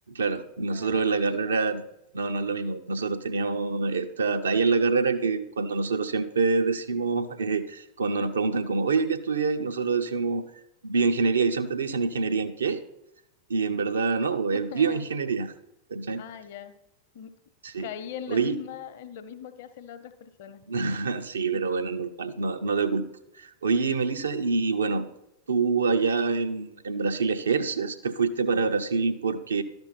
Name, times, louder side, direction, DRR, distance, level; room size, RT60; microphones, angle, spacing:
voice 1, 0.1-1.8 2.1-10.4 10.8-12.8 13.5-15.5 15.9-16.2 17.6-17.9 18.3-18.6 20.7-23.0 23.3-25.1 25.5-29.6, right 4 dB, 70° right, 8 dB, 0.7 m, -26 dB
voice 2, 0.7-1.5 14.5-15.0 16.2-16.8 17.1-17.4 17.8-20.6 21.5-21.7, left 9 dB, 50° left, 9 dB, 0.8 m, -41 dB
12.0 x 5.3 x 5.9 m, 0.84 s
figure-of-eight pair, 90°, 0 cm